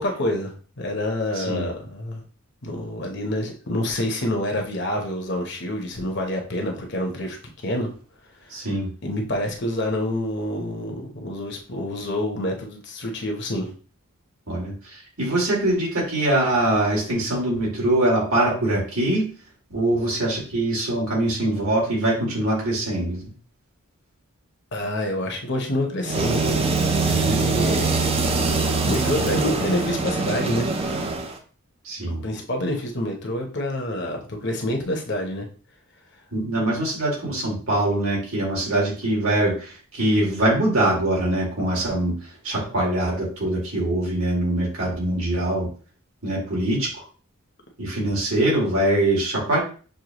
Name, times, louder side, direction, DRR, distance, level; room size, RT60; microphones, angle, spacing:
voice 1, 0.0-2.2 2.6-7.4 7.6-7.9 9.0-13.7 24.7-28.1 28.5-30.7 32.1-35.5 36.6-36.7, left 1 dB, 50° left, 2 dB, 0.8 m, -27 dB
voice 2, 1.4-1.7 8.5-8.9 14.5-14.7 15.2-19.3 19.7-23.2 27.1-27.4 31.8-32.2 36.3-42.2 42.4-45.7 46.2-46.9 47.8-49.6, right 1 dB, 70° right, -4 dB, 2.3 m, -23 dB
sound 1, 26.0-31.4, right 3 dB, 25° right, 0.5 m, -23 dB
6.4 x 2.3 x 2.9 m, 0.39 s
head